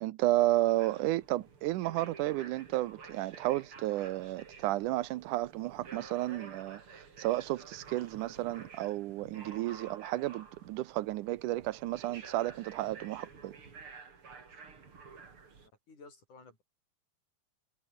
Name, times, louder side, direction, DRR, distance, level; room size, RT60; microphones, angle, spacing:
voice 1, 0.0-13.6, right 16 dB, 80° right, 2.2 m, -32 dB
sound 1, 0.6-15.7, right 5 dB, 45° right, 4.0 m, -51 dB
voice 2, 15.6-16.6, left 3 dB, 70° left, 8.9 m, -55 dB
omnidirectional pair, 3.6 m